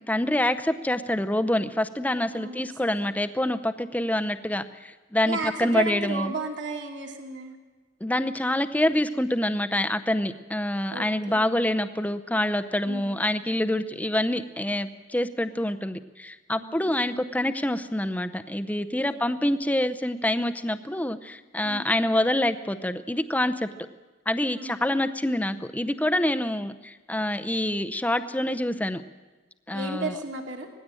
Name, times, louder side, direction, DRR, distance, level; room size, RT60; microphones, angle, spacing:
voice 1, 0.1-6.3 8.0-23.7 24.3-29.0 29.7-30.1, left 1 dB, 10° left, 9 dB, 0.6 m, -26 dB
voice 2, 2.3-3.1 5.2-7.6 10.9-11.6 12.8-13.2 16.6-16.9 19.1-19.2 21.6-21.9 24.5-24.9 29.7-30.7, right 3 dB, 70° right, 2 dB, 2.5 m, -34 dB
19.0 x 16.0 x 9.0 m, 1.2 s
head